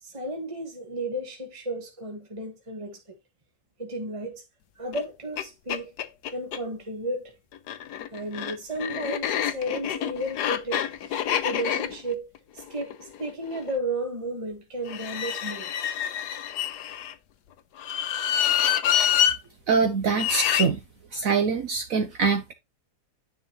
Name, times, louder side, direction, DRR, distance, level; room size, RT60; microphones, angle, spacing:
voice 1, 0.0-3.2 3.8-4.4 4.8-5.9 6.3-7.3 8.1-12.3 12.5-16.0, right 1 dB, 20° right, 1.3 m, -33 dB
sound 1, 4.9-5.0 5.4-5.5 5.7-6.6 7.5-13.7 14.9-17.1 17.8-19.4 20.1-20.7, left 10 dB, 85° left, 1.4 m, -27 dB
voice 2, 19.7-20.8 21.1-22.5, right 5 dB, 60° right, 1.2 m, -24 dB
10.0 x 5.1 x 3.0 m
omnidirectional pair, 1.7 m